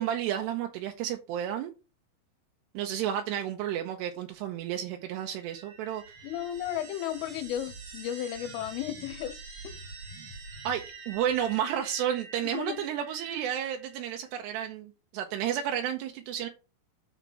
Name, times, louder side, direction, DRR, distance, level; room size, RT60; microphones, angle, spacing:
voice 1, 0.0-1.7 2.7-6.0 10.6-16.5, right 10 dB, 85° right, 2.4 m, -31 dB
sound 1, 5.0-14.3, right 4 dB, 50° right, 1.7 m, -46 dB
voice 2, 6.2-9.4 9.6-9.8 12.5-12.8, left 11 dB, 80° left, 3.2 m, -34 dB
10.0 x 4.7 x 5.6 m
omnidirectional pair, 5.9 m